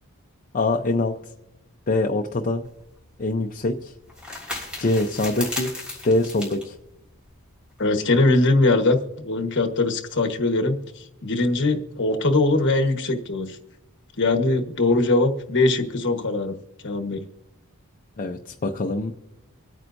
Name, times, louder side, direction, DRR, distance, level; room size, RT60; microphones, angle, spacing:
voice 1, 0.5-1.1 1.9-2.7 3.2-3.9 4.8-5.7 6.0-6.8 18.2-19.1, left 2 dB, 40° left, 3 dB, 0.6 m, -24 dB
sound 1, 2.7-7.8, left 2 dB, 5° right, 3.1 m, -36 dB
voice 2, 7.8-13.6 14.2-16.5 16.8-17.2, left 2 dB, 55° left, 5 dB, 1.3 m, -21 dB
25.0 x 9.0 x 2.6 m, 0.96 s
head